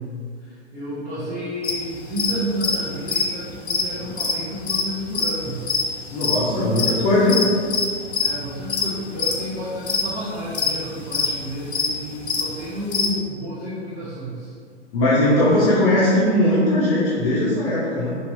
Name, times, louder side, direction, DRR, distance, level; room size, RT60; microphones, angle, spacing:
voice 1, 0.4-5.6 8.2-14.5, equal, 10° right, -13 dB, 0.5 m, -31 dB
sound 1, 1.6-13.1, left 5 dB, 70° left, 0.6 m, -24 dB
voice 2, 6.1-7.4 14.9-18.2, left 1 dB, 35° left, -9 dB, 0.8 m, -19 dB
3.2 x 2.9 x 2.6 m, 2.1 s
figure-of-eight pair, 115°, 34 cm